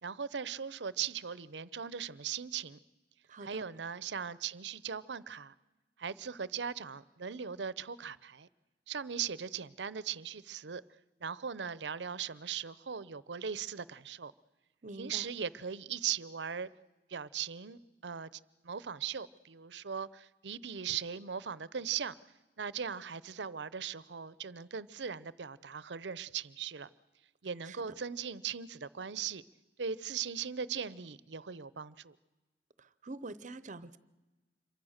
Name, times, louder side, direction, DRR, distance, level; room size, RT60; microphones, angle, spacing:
voice 1, 0.0-2.8 3.4-5.5 6.0-8.5 8.9-10.8 11.2-14.3 15.0-16.7 17.1-18.3 18.6-22.1 22.6-26.9 27.4-29.4 29.8-32.2, right 7 dB, 80° right, 0.7 m, -39 dB
voice 2, 3.3-3.7 14.8-15.3 27.6-28.0 32.8-34.0, right 2 dB, 45° right, 0.8 m, -46 dB
27.0 x 23.5 x 6.5 m
head